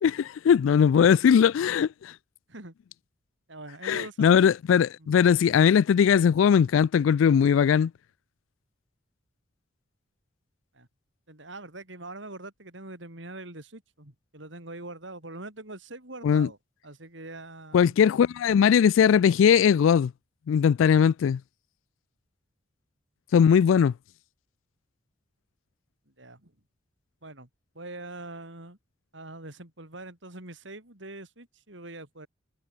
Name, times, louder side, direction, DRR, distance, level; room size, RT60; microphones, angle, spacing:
voice 1, 0.0-2.2 3.8-7.9 16.2-16.5 17.7-20.1 20.5-21.4 23.3-23.9, left 7 dB, 80° left, 0.3 m, -20 dB
voice 2, 3.5-4.4 5.0-5.1 10.7-10.9 11.3-16.6 16.8-17.9 26.1-26.5 27.2-27.5 27.7-28.8 29.1-32.3, right 2 dB, 70° right, 4.4 m, -43 dB
head